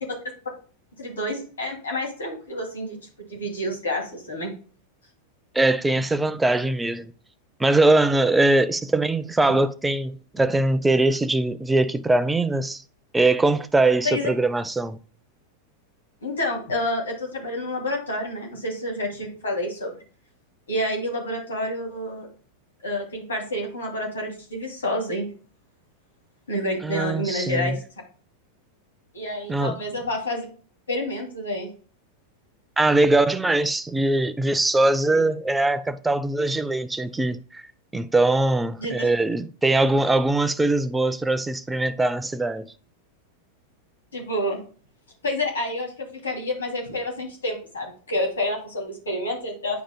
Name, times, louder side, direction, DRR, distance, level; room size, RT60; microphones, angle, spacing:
voice 1, 1.0-3.0 3.3-4.5 14.0-14.3 16.2-19.9 20.7-22.3 22.8-25.3 26.5-27.8 29.1-30.5 30.9-31.7 38.8-39.1 44.1-44.6 45.2-49.8, left 1 dB, 70° left, 2.6 m, -28 dB
voice 2, 5.5-7.1 7.6-12.8 13.1-15.0 26.8-27.8 29.5-29.8 32.8-37.6 37.9-42.7, right 2 dB, 10° right, 0.5 m, -21 dB
10.0 x 5.0 x 2.2 m
figure-of-eight pair, 90°, 0 cm